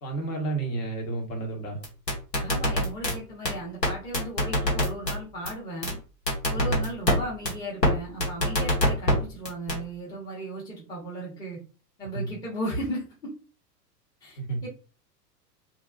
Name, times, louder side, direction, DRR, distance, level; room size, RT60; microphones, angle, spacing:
voice 1, 0.0-1.8 6.5-6.9 12.1-12.3 14.4-14.6, right 3 dB, 55° left, 1 dB, 1.1 m, -31 dB
sound 1, 1.8-3.1 3.4-3.5 3.8-3.9 4.1-5.1 5.4-5.5 5.8-5.9 6.3-7.1 7.4-7.5 7.8-7.9 8.2-9.1 9.4-9.8, left 1 dB, 90° left, 1.1 m, -23 dB
voice 2, 2.4-6.0 6.5-11.6 12.0-13.3 14.2-14.7, right 1 dB, 10° left, -5 dB, 0.6 m, -36 dB
2.5 x 2.2 x 2.3 m, 0.36 s
figure-of-eight pair, 95°, 49 cm